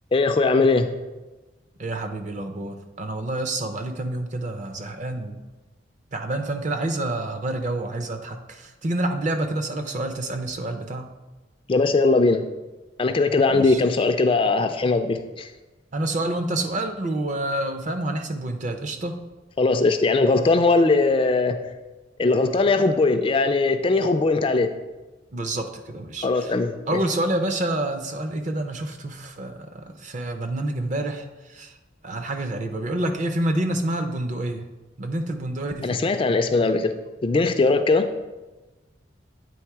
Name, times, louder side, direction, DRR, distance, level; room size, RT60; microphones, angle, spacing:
voice 1, 0.1-0.9 11.7-12.4 13.0-15.5 19.6-21.6 22.2-24.7 26.2-27.0 35.8-36.9 37.2-38.1, left 3 dB, 30° left, 8 dB, 0.3 m, -20 dB
voice 2, 1.8-5.4 6.1-11.1 13.5-13.8 15.9-19.1 25.3-26.5 26.9-31.7 32.0-34.6 35.0-36.1, right 1 dB, 40° right, 6 dB, 0.6 m, -28 dB
8.6 x 3.6 x 4.7 m, 1.1 s
head